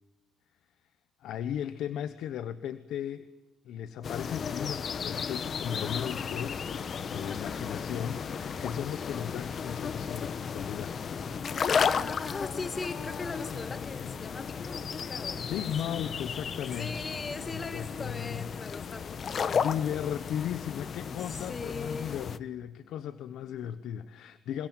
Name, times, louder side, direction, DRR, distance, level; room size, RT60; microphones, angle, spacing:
voice 1, 1.2-3.3 3.6-6.7 7.1-11.1 15.4-16.9 17.5-18.5 19.5-24.7, left 9 dB, 80° left, 13 dB, 1.0 m, -36 dB
sound 1, 4.0-22.4, left 6 dB, 50° left, 1.1 m, -34 dB
sound 2, 6.0-17.5, right 4 dB, 25° right, 4.9 m, -53 dB
voice 2, 7.3-7.7 11.7-15.7 16.8-19.7 21.1-22.2, left 3 dB, 30° left, 9 dB, 1.9 m, -40 dB
27.0 x 21.5 x 9.3 m, 1.1 s
cardioid pair, 90°, 0 cm